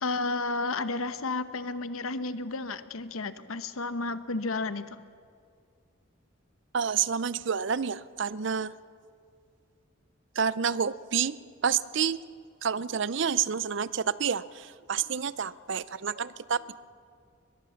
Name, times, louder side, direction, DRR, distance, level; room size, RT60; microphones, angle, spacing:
voice 1, 0.0-5.0, left 3 dB, 85° left, 12 dB, 1.0 m, -32 dB
voice 2, 6.7-8.7 10.4-11.4 11.6-12.2 12.6-16.6, right 7 dB, 60° right, 18 dB, 0.5 m, -29 dB
23.0 x 21.0 x 7.1 m, 2.3 s
head